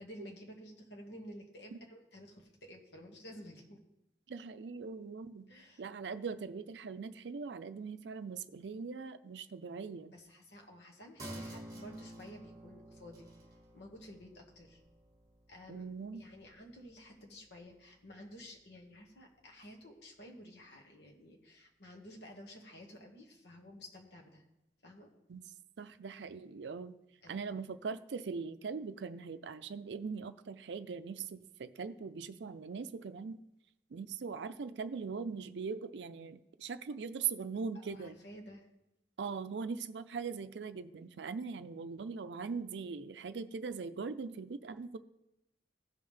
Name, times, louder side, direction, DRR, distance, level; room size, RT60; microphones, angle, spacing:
voice 1, 0.0-3.8 5.5-5.8 10.1-13.3 13.7-14.8 15.5-15.9 16.1-24.4 24.8-25.1 27.2-27.4 37.7-38.7, equal, 65° left, 1 dB, 1.6 m, -52 dB
voice 2, 4.3-5.5 5.8-10.1 15.7-16.3 25.3-25.4 25.8-26.9 27.3-33.4 33.9-38.2 39.2-45.0, right 5 dB, 75° right, 12 dB, 0.5 m, -41 dB
sound 1, 11.2-18.2 18.6-18.7, right 1 dB, 20° right, 1.8 m, -51 dB
16.0 x 5.5 x 3.3 m, 0.90 s
head